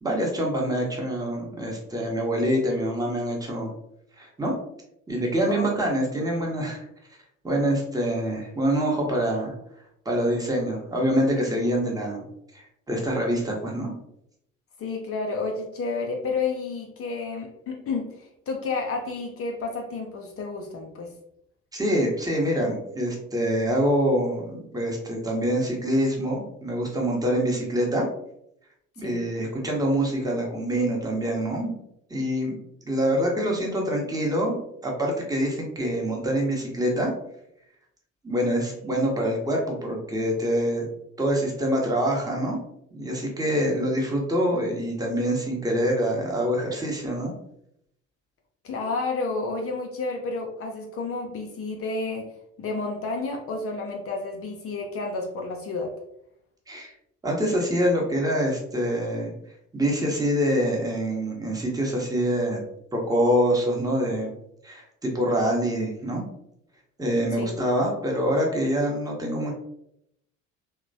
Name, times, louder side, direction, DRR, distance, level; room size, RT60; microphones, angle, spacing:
voice 1, 0.0-3.7 4.2-4.5 5.1-6.8 7.4-9.5 10.0-12.2 12.5-13.9 21.7-28.0 29.0-31.7 32.1-32.5 32.9-37.1 38.2-40.9 41.2-42.6 42.9-47.3 56.7-56.9 57.2-59.3 59.7-62.6 62.9-64.3 64.6-66.2 67.0-69.5, equal, 10° right, -1 dB, 0.9 m, -25 dB
voice 2, 14.8-21.1 29.0-29.2 48.6-52.3 52.6-55.9 67.3-67.5, left 3 dB, 35° left, 2 dB, 0.5 m, -31 dB
3.0 x 2.1 x 2.6 m, 0.76 s
figure-of-eight pair, 50°, 39 cm